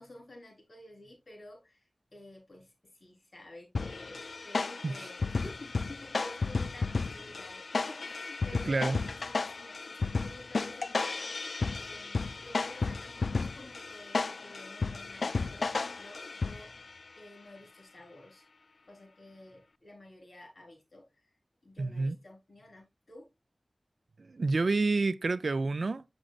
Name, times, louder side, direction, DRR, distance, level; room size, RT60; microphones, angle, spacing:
voice 1, 0.0-18.5 18.8-23.3, left 1 dB, 60° left, 3.4 m, -51 dB
sound 1, 3.7-16.9, left 4 dB, 80° left, 0.3 m, -33 dB
voice 2, 8.7-9.0 21.8-22.2 24.2-26.0, right 3 dB, 75° right, 0.4 m, -29 dB
7.6 x 6.1 x 2.4 m
wide cardioid pair, 60°, 0 cm